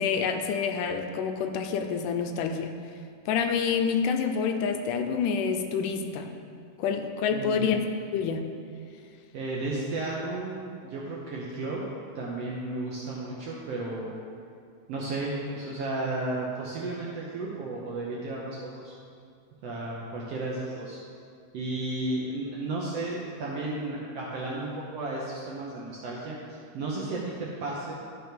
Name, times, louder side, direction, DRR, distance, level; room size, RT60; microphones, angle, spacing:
voice 1, 0.0-2.7 3.3-6.3 6.8-7.8 8.1-8.5, left 6 dB, 80° left, 5 dB, 2.1 m, -27 dB
voice 2, 7.3-7.7 9.3-11.8 12.1-14.1 14.9-18.9 19.6-21.0 21.5-28.0, right 2 dB, 70° right, -4 dB, 1.5 m, -33 dB
12.0 x 4.6 x 5.1 m, 2.3 s
omnidirectional pair, 3.8 m